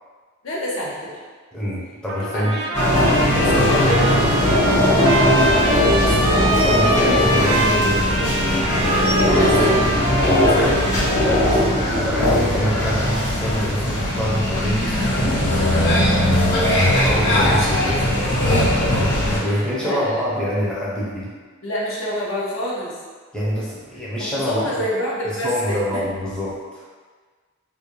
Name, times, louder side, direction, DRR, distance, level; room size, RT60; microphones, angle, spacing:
voice 1, 0.4-1.2 2.2-2.6 2.8-5.2 5.7-6.1 6.5-6.7 7.0-7.1 9.1-9.8 10.5-10.9 17.3-18.0 18.5-18.7 18.9-19.0 19.5-20.2 21.6-23.0 24.2-26.1, left 1 dB, 75° left, -5 dB, 0.6 m, -28 dB
voice 2, 1.5-2.6 5.2-5.6 6.6-8.1 10.1-10.7 11.2-16.1 16.8-17.9 19.0-21.3 23.3-24.7 25.3-26.8, equal, 5° left, -8 dB, 0.5 m, -25 dB
Trumpet, 2.1-11.8, right 1 dB, 65° right, 0.4 m, -25 dB
sound 1, 2.7-19.4, left 1 dB, 55° left, 1.2 m, -19 dB
2.3 x 2.1 x 3.0 m, 1.5 s
head